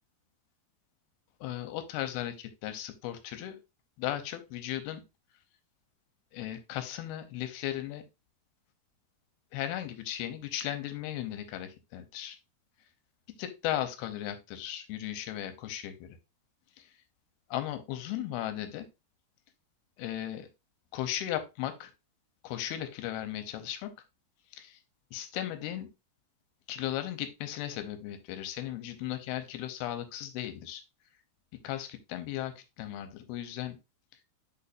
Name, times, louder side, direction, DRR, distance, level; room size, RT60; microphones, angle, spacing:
voice 1, 1.4-3.6 4.0-5.0 6.3-8.0 9.5-12.4 13.4-16.2 16.8-16.9 17.5-18.9 20.0-20.5 20.9-21.9 22.4-23.9 24.5-24.8 25.1-25.9 26.7-30.8 31.6-33.8, left 12 dB, 85° left, 9 dB, 2.5 m, -36 dB
6.9 x 5.4 x 2.5 m, 0.25 s
omnidirectional pair, 4.7 m